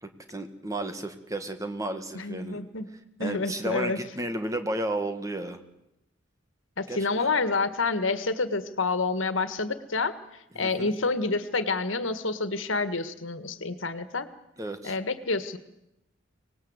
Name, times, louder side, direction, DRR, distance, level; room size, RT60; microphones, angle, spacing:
voice 1, 0.0-2.6 3.2-5.6 6.9-7.2 10.6-10.9 14.6-15.0, right 1 dB, 15° right, 7 dB, 1.8 m, -33 dB
voice 2, 2.1-2.9 3.2-4.0 6.8-10.1 10.6-14.3 14.8-15.6, left 3 dB, 80° left, 12 dB, 1.7 m, -28 dB
25.0 x 19.0 x 8.1 m, 0.86 s
head